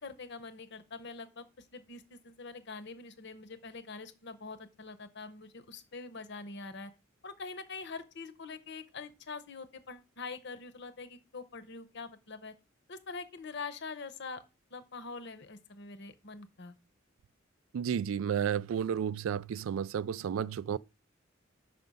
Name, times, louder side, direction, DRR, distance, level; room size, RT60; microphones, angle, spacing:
voice 1, 0.0-1.5 1.7-6.9 7.2-12.5 12.9-14.4 14.7-16.8, left 4 dB, 60° left, 0.9 m, -44 dB
voice 2, 17.7-20.8, right 8 dB, 85° right, 0.3 m, -32 dB
6.0 x 5.5 x 5.4 m
head